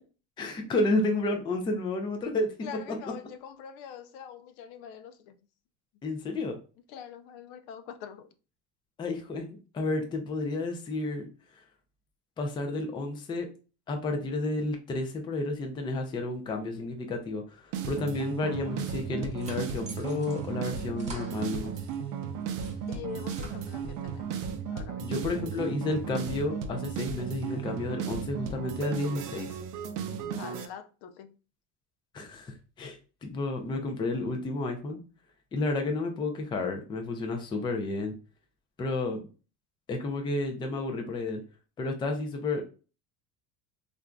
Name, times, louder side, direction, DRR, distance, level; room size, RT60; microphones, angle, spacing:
voice 1, 0.4-2.5 6.0-6.6 9.0-11.3 12.4-13.5 13.9-21.7 25.0-29.6 32.1-35.0 35.5-38.1 38.8-39.2 39.9-41.4 41.8-42.6, left 2 dB, 10° left, 0.3 m, -31 dB
voice 2, 2.6-5.4 6.9-8.3 22.9-24.4 24.7-25.2 30.4-31.4, left 8 dB, 70° left, 0.5 m, -44 dB
sound 1, 17.7-30.7, right 7 dB, 50° right, 0.5 m, -35 dB
sound 2, 19.0-22.0 22.4-24.1, right 2 dB, 15° right, 1.0 m, -49 dB
3.2 x 2.5 x 2.2 m
supercardioid pair, 120°, 42 cm